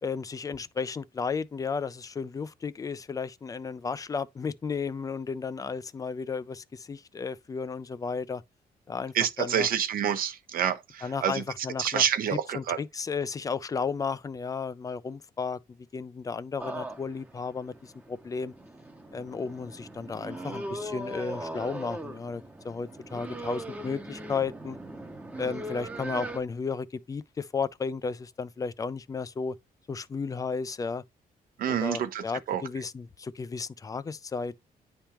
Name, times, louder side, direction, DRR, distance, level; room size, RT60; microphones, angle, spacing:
voice 1, 0.0-8.4 8.9-9.7 11.0-12.0 12.5-15.6 15.9-18.5 19.1-24.8 25.4-29.6 29.9-31.0 31.7-34.6, left 5 dB, 25° left, 0.3 m, -33 dB
voice 2, 9.1-11.4 11.8-12.8 31.6-32.6, right 9 dB, 70° right, 0.8 m, -28 dB
sound 1, 16.6-26.4, right 1 dB, 10° right, 0.7 m, -39 dB
9.9 x 3.5 x 2.9 m
wide cardioid pair, 165°, 15 cm